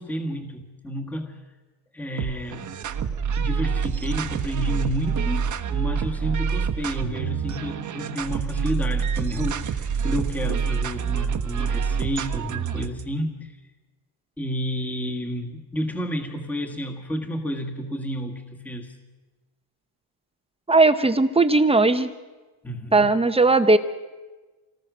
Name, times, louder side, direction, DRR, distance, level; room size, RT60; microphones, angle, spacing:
voice 1, 0.0-1.4 1.9-2.7 3.4-13.6 14.4-19.0 22.6-23.1, equal, 5° left, 3 dB, 1.6 m, -31 dB
sound 1, 2.2-13.0, right 6 dB, 35° right, 1.2 m, -27 dB
voice 2, 20.7-22.1 22.9-23.8, right 3 dB, 10° right, 10 dB, 0.8 m, -18 dB
27.0 x 19.0 x 6.2 m, 1.3 s
cardioid pair, 150°, 49 cm